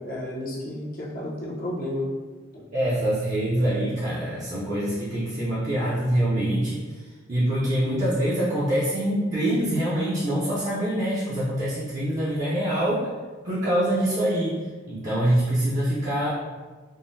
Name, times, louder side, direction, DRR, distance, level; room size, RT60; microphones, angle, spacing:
voice 1, 0.0-2.1 2.5-2.6, left 1 dB, 50° left, -5 dB, 0.7 m, -32 dB
voice 2, 2.7-6.8 7.3-13.1 13.4-16.3, right 1 dB, 40° right, -9 dB, 0.6 m, -25 dB
3.6 x 2.1 x 2.6 m, 1.4 s
head